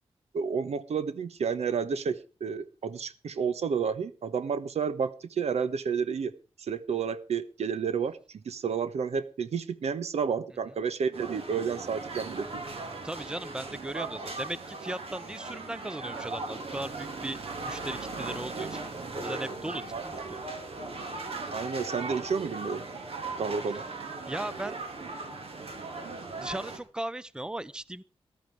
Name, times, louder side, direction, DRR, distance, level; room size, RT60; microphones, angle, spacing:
voice 1, 0.3-6.3 6.6-8.2 8.4-12.6 13.9-14.1 19.9-20.0 21.5-22.8 23.4-23.8, right 6 dB, 85° right, 14 dB, 1.2 m, -31 dB
sound 1, 11.1-26.8, right 3 dB, 65° right, 3.3 m, -38 dB
voice 2, 13.0-18.8 19.2-20.4 24.3-24.8 26.4-28.0, right 1 dB, 10° right, 19 dB, 0.7 m, -37 dB
15.0 x 12.5 x 4.8 m, 0.34 s
wide cardioid pair, 90°, 11 cm